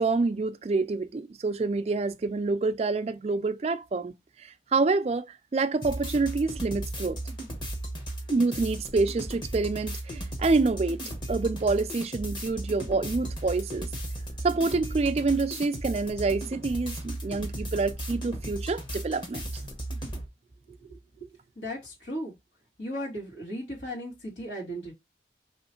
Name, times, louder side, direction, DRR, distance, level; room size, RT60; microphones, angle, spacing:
voice 1, 0.0-4.1 4.4-5.2 5.5-7.2 8.3-11.0 11.3-13.9 14.4-19.4, right 3 dB, 35° right, 0.3 m, -27 dB
sound 1, 5.8-20.3, right 1 dB, 25° left, 1.0 m, -36 dB
voice 2, 20.7-21.3 21.6-22.3 22.8-24.9, equal, 85° left, 2.3 m, -37 dB
3.1 x 3.1 x 4.3 m
head